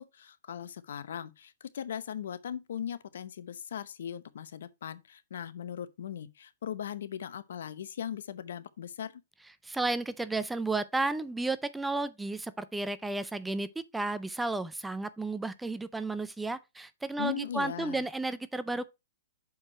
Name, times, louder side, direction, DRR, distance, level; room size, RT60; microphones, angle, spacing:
voice 1, 0.0-9.2 17.2-18.1, left 9 dB, 75° left, 0.8 m, -39 dB
voice 2, 9.6-18.9, right 2 dB, 5° right, 0.4 m, -33 dB
6.5 x 4.8 x 4.1 m
hypercardioid pair, 145°, 0 cm